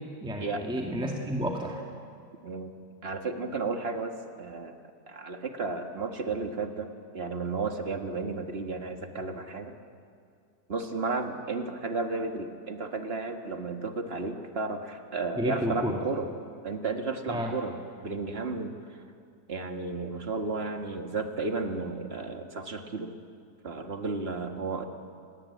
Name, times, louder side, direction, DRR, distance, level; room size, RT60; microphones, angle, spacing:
voice 1, 0.0-1.8 15.4-16.0 17.3-17.5, equal, 5° right, 0 dB, 2.0 m, -31 dB
voice 2, 2.4-2.8 3.0-4.8 5.1-9.7 10.7-16.3 16.6-17.7 18.0-18.8 19.5-23.1 23.6-24.9, right 3 dB, 35° right, 5 dB, 1.9 m, -33 dB
29.0 x 20.5 x 8.6 m, 2.3 s
omnidirectional pair, 1.9 m